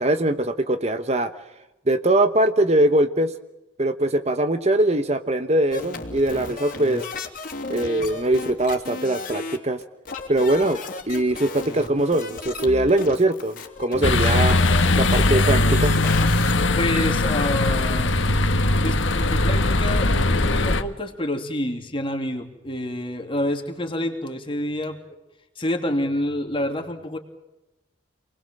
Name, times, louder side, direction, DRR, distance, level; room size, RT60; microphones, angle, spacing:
voice 1, 0.0-1.3 1.9-3.4 3.8-7.1 7.7-9.8 10.3-10.8 11.1-14.6 15.0-15.9, right 1 dB, 35° right, 9 dB, 1.1 m, -21 dB
sound 1, 5.7-16.6, left 3 dB, 45° left, 3.2 m, -34 dB
sound 2, 14.0-20.8, left 2 dB, 75° left, 1.6 m, -20 dB
voice 2, 16.7-18.1 18.6-25.2 25.6-27.2, left 1 dB, 25° left, 4 dB, 3.1 m, -28 dB
28.5 x 20.5 x 7.7 m, 0.95 s
head